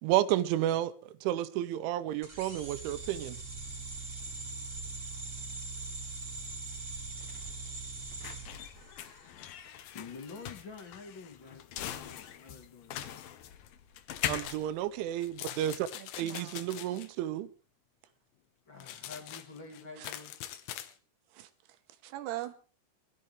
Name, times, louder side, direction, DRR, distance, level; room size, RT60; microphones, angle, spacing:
voice 1, 0.0-3.4 14.3-15.9 16.2-17.5, right 13 dB, 90° right, 3.3 m, -31 dB
sound 1, 2.2-9.3, right 3 dB, 20° right, 2.8 m, -41 dB
sound 2, 6.7-15.8, left 11 dB, 70° left, 2.2 m, -42 dB
voice 2, 9.9-13.2 18.7-20.3, left 4 dB, 35° left, 2.3 m, -48 dB
sound 3, 14.1-14.6 15.2-17.1 18.8-20.9, left 12 dB, 90° left, 3.4 m, -44 dB
voice 3, 15.9-16.6 20.0-20.1 21.3-21.8 22.0-22.5, right 15 dB, 75° right, 2.8 m, -42 dB
22.5 x 13.5 x 3.3 m
omnidirectional pair, 5.3 m